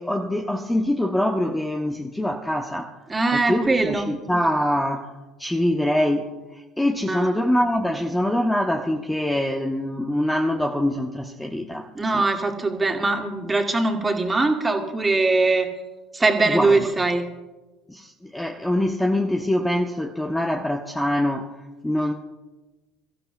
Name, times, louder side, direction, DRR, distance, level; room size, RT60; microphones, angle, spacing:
voice 1, 0.0-3.0 3.3-5.1 5.4-6.4 6.8-11.9 12.1-12.3 16.5-16.9 17.9-21.5 21.8-22.1, left 1 dB, 5° left, 3 dB, 1.0 m, -24 dB
voice 2, 3.1-4.1 7.1-7.3 11.9-15.7 16.1-17.2, right 3 dB, 15° right, 3 dB, 1.9 m, -21 dB
26.5 x 15.0 x 2.3 m, 1.1 s
figure-of-eight pair, 65°, 0 cm